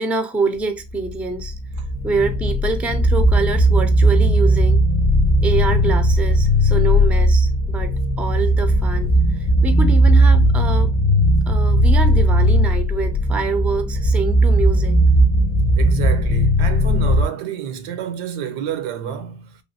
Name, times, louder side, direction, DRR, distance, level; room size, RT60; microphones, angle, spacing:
voice 1, 0.0-1.5 2.0-4.8 5.4-9.1 9.4-10.9 11.5-15.0, right 3 dB, 5° right, 0.3 m, -25 dB
sound 1, 0.9-17.3, right 1 dB, 30° left, 0.7 m, -16 dB
voice 2, 15.8-19.6, right 9 dB, 85° right, 0.7 m, -29 dB
3.3 x 2.3 x 2.7 m
supercardioid pair, 90°, 48 cm